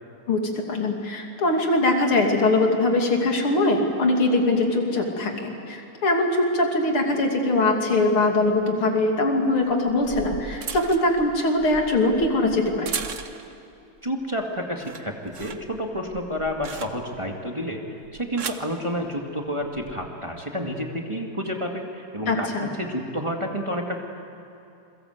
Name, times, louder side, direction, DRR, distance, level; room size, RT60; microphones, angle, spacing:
voice 1, 0.7-12.9 22.3-22.7, left 2 dB, 85° left, 2 dB, 3.6 m, -22 dB
sound 1, 8.4-8.5 9.7-13.6 14.1-14.4 14.7-17.3 18.0-18.7 19.6-19.9, right 6 dB, 45° right, 1.2 m, -37 dB
voice 2, 14.0-17.8 18.1-24.0, equal, 15° right, 1 dB, 2.0 m, -30 dB
28.5 x 22.5 x 8.0 m, 2.7 s
omnidirectional pair, 2.3 m